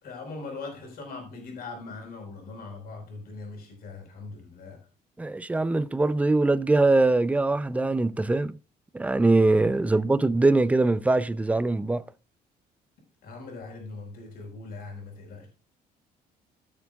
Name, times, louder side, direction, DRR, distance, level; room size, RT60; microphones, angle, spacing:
voice 1, 0.0-4.8 9.9-10.1 13.2-15.5, left 3 dB, 65° left, 4.4 m, -40 dB
voice 2, 5.2-8.5 8.9-12.0, right 2 dB, 10° right, 0.5 m, -22 dB
16.0 x 6.8 x 2.4 m
cardioid pair, 110°, 17 cm